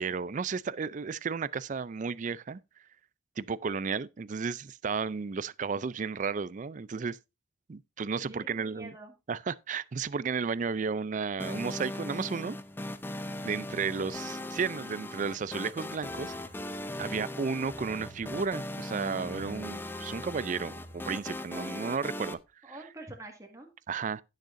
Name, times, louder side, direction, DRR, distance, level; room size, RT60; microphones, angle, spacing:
voice 1, 0.0-2.6 3.4-7.2 7.7-8.9 9.3-12.6 13.4-16.3 17.0-22.4 23.9-24.2, right 5 dB, 45° right, 0.4 m, -33 dB
voice 2, 8.2-9.1 16.9-17.4 22.6-23.7, right 2 dB, 20° right, 2.0 m, -47 dB
sound 1, 11.4-22.3, left 1 dB, 10° left, 0.6 m, -39 dB
sound 2, 12.6-22.4, equal, 35° left, 2.7 m, -53 dB
16.5 x 6.5 x 2.6 m
head